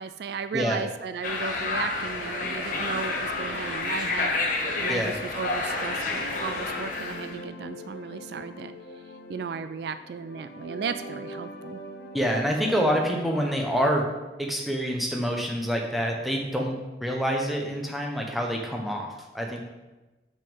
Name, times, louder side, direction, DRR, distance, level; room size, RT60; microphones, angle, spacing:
voice 1, 0.0-8.7 9.3-11.8, right 5 dB, 60° right, 12 dB, 0.3 m, -35 dB
voice 2, 0.5-0.8 4.9-5.2 12.1-14.1 14.4-19.1 19.3-19.6, equal, ahead, 0 dB, 1.0 m, -27 dB
sound 1, 1.2-7.4, left 3 dB, 45° left, 1.2 m, -29 dB
sound 2, 6.2-14.1, left 1 dB, 60° left, 0.8 m, -42 dB
6.4 x 5.4 x 7.1 m, 1.1 s
head